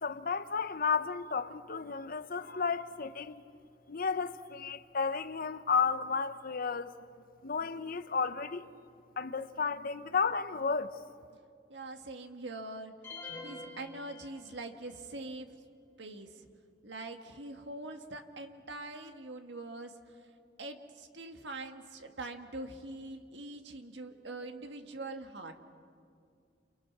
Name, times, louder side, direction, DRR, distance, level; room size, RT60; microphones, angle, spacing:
voice 1, 0.0-3.4 3.9-6.9 7.4-8.7 9.2-11.0, left 5 dB, 50° left, 0.9 m, -33 dB
voice 2, 11.7-12.9 13.4-15.5 16.0-16.5 16.8-19.9 20.6-25.5, right 2 dB, 70° right, 1.9 m, -43 dB
sound 1, 13.0-14.9, left 3 dB, 10° left, 7.9 m, -46 dB
29.5 x 28.5 x 6.2 m
head